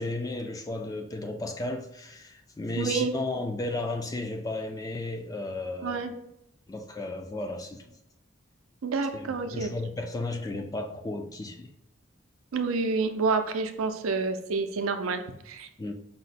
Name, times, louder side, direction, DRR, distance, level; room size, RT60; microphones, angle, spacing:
voice 1, 0.0-6.0 6.7-7.9 9.1-11.7 15.8-15.9, left 2 dB, 15° left, 0.3 m, -34 dB
voice 2, 2.8-3.1 5.8-6.1 8.8-9.7 12.5-15.7, right 4 dB, 85° right, 0.5 m, -28 dB
5.4 x 2.1 x 4.0 m
head